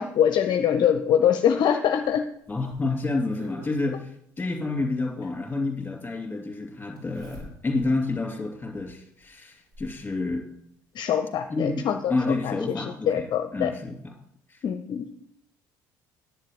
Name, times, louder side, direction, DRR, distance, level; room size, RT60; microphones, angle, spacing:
voice 1, 0.0-2.2 10.9-13.7 14.6-15.1, left 9 dB, 45° left, 9 dB, 0.6 m, -24 dB
Zipper (clothing), 2.0-3.8 5.2-5.3 7.0-7.9 8.4-8.5 9.2-10.0 11.2-11.3 11.7-11.8, equal, 60° right, 4.9 m, -47 dB
voice 2, 2.5-10.4 11.5-11.8 12.1-13.3 13.5-14.0 14.5-14.6, left 3 dB, 15° left, 2 dB, 2.7 m, -29 dB
10.5 x 8.9 x 5.0 m, 0.73 s
figure-of-eight pair, 55°, 11 cm